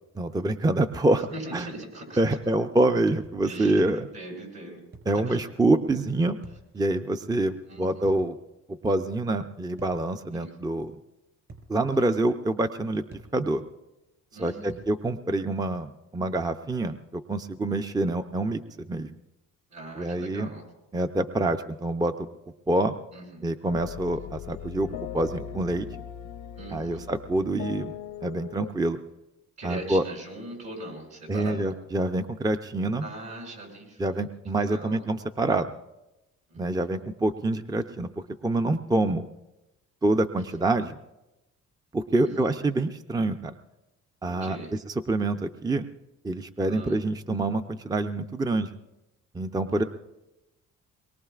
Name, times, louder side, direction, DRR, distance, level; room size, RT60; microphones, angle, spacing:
voice 1, 0.2-1.7 2.2-4.1 5.1-6.4 6.7-8.4 8.7-10.9 11.7-13.6 14.4-19.1 20.0-20.5 20.9-22.3 22.7-22.9 23.4-24.9 25.1-25.9 26.7-27.9 28.2-29.0 29.6-30.0 31.3-33.1 34.0-35.7 36.6-39.3 40.0-41.0 41.9-43.6 44.2-44.6 45.1-45.9 46.2-48.7 49.3-49.8, right 2 dB, 15° right, 8 dB, 0.5 m, -26 dB
voice 2, 1.3-2.4 3.4-4.8 5.1-5.4 7.6-8.1 10.3-10.5 14.3-14.8 19.7-20.6 23.1-23.5 26.5-27.0 29.6-31.7 33.0-34.3 34.5-35.0 36.5-36.8 40.4-40.5 42.1-42.5 44.3-44.7 46.7-47.0, right 2 dB, 65° right, -1 dB, 8.0 m, -41 dB
sound 1, 3.2-3.5 4.9-5.2 6.4-6.7 8.1-8.3 9.8-10.0 11.5-11.7 13.1-13.4 14.7-14.9, right 3 dB, 45° right, 4.9 m, -46 dB
sound 2, 23.7-28.7, left 9 dB, 85° left, 0.8 m, -39 dB
23.5 x 22.0 x 2.4 m, 0.98 s
cardioid pair, 90°, 30 cm